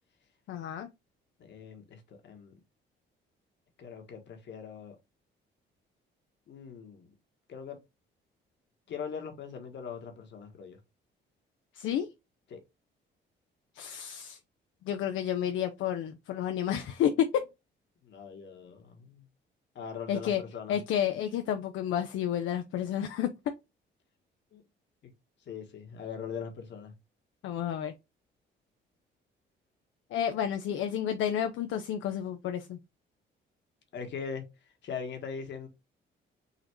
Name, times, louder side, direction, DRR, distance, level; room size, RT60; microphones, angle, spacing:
voice 1, 0.5-0.9 11.7-12.1 13.8-14.4 14.8-17.4 20.1-20.4 20.7-23.3 27.4-27.9 30.1-32.8, left 9 dB, 80° left, 0.5 m, -30 dB
voice 2, 1.4-2.6 3.8-4.9 6.5-7.1 7.5-7.8 8.9-10.8 12.5-12.6 18.0-19.3 19.7-20.8 24.5-24.6 25.0-25.1 25.5-26.9 33.9-34.4 34.8-35.7, left 6 dB, 65° left, 1.3 m, -41 dB
4.1 x 2.5 x 4.4 m
cardioid pair, 90°, 20 cm